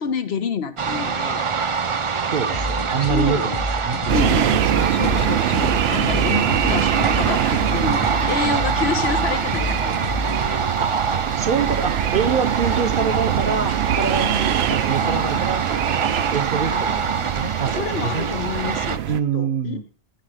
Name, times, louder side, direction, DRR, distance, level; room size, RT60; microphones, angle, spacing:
voice 1, 0.0-1.4 2.1-2.2 3.0-3.5 4.0-10.6 15.0-15.5 16.7-16.8 17.7-19.0 19.3-19.8, left 6 dB, 75° left, 1.1 m, -28 dB
sound 1, 0.8-19.0, right 6 dB, 40° right, 0.5 m, -25 dB
voice 2, 2.2-4.6 7.9-8.3 10.8-11.0 11.4-15.7 16.3-18.3 19.1-19.8, right 6 dB, 55° right, 1.0 m, -26 dB
sound 2, 2.5-10.5, left 1 dB, 30° left, 0.6 m, -29 dB
sound 3, 4.1-19.2, right 11 dB, 80° right, 0.8 m, -24 dB
13.0 x 5.0 x 4.9 m
omnidirectional pair, 1.1 m